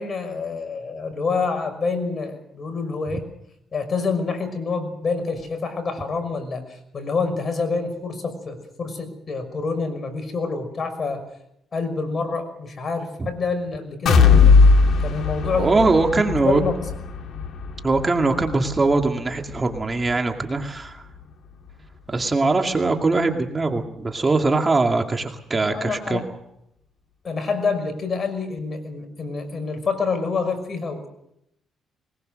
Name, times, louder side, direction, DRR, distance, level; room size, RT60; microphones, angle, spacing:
voice 1, 0.0-3.3 3.7-11.2 11.7-14.7 15.0-15.7 16.1-16.8 25.7-26.2 27.2-31.1, left 4 dB, 40° left, 8 dB, 5.9 m, -27 dB
sound 1, 14.1-21.8 22.2-22.4 22.8-22.9, left 4 dB, 65° left, 2.7 m, -20 dB
voice 2, 15.5-16.6 17.8-21.0 22.1-26.2, right 3 dB, 25° right, 3 dB, 2.4 m, -21 dB
22.5 x 20.5 x 6.5 m, 0.78 s
cardioid pair, 90°, 0 cm